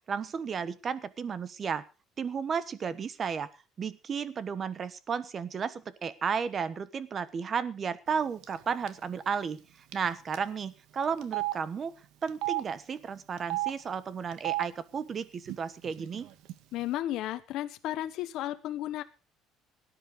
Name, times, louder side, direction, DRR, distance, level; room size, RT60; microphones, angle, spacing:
voice 1, 0.1-1.8 2.2-3.5 3.8-9.6 9.9-11.9 12.2-16.3, right 6 dB, 30° right, 16 dB, 1.1 m, -33 dB
Telephone, 8.4-8.6 8.9-9.0 9.9-10.1 10.3-10.4 11.2-11.5 12.3-12.6 13.4-13.7 14.3-14.6 15.5-15.6 15.8-16.5, right 20 dB, 70° right, 1.9 m, -32 dB
voice 2, 16.7-19.0, left 13 dB, 60° left, 9 dB, 1.1 m, -33 dB
18.0 x 10.0 x 5.2 m, 0.32 s
cardioid pair, 150°, 0 cm